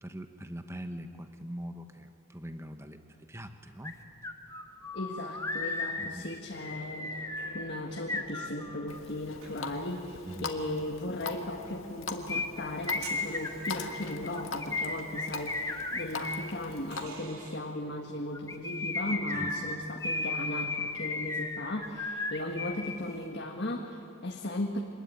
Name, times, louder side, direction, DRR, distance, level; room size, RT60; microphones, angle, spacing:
voice 1, 0.0-4.0 6.0-6.2 10.3-10.5 19.3-19.5, equal, 10° right, 7 dB, 1.1 m, -42 dB
sound 1, 3.8-3.9 4.2-9.0 12.3-16.5 18.3-23.0 23.2-23.3, left 3 dB, 15° left, 1.3 m, -35 dB
voice 2, 4.9-7.3 7.5-24.8, left 1 dB, 50° left, 1 dB, 1.7 m, -37 dB
sound 2, 6.5-17.6, right 2 dB, 90° right, 3.1 m, -50 dB
Water tap faucet, 8.9-17.0, left 4 dB, 70° left, 1.8 m, -42 dB
25.0 x 21.0 x 9.1 m, 2.7 s
head